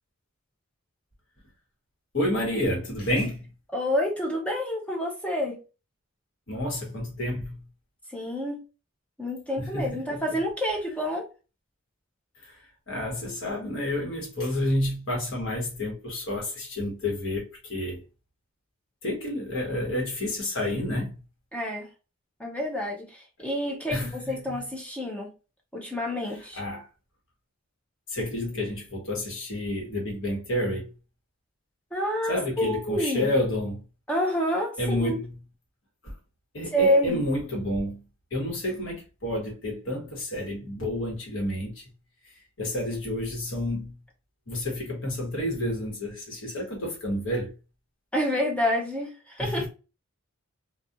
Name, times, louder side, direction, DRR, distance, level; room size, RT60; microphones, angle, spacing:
voice 1, 2.1-3.5 6.5-7.5 9.6-10.4 12.4-12.6 12.9-18.0 19.0-21.1 23.9-24.6 26.3-26.9 28.1-30.9 32.3-33.8 34.8-35.3 36.0-36.1 36.5-38.0 38.3-41.8 42.6-43.9 44.5-47.5 49.4-49.7, left 1 dB, 60° left, 1.1 m, -30 dB
voice 2, 3.7-5.6 8.1-8.6 9.2-11.3 21.5-21.9 22.4-25.3 25.7-26.6 31.9-33.3 34.1-35.2 36.7-37.2 48.1-49.7, equal, 5° left, 0.5 m, -28 dB
2.4 x 2.3 x 2.7 m
head